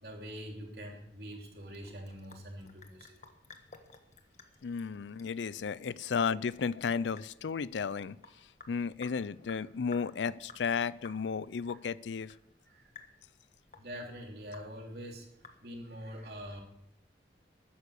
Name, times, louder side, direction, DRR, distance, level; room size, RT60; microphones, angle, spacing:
voice 1, 0.0-3.2 11.7-11.8 12.7-12.9 13.8-15.3 15.6-16.6, equal, 60° right, 1 dB, 3.1 m, -44 dB
Sink (filling or washing) / Drip, 1.5-16.0, left 4 dB, 40° left, 1.4 m, -56 dB
voice 2, 4.6-8.2 8.7-12.3, left 6 dB, 90° left, 19 dB, 0.5 m, -33 dB
13.5 x 9.6 x 6.5 m, 0.78 s
head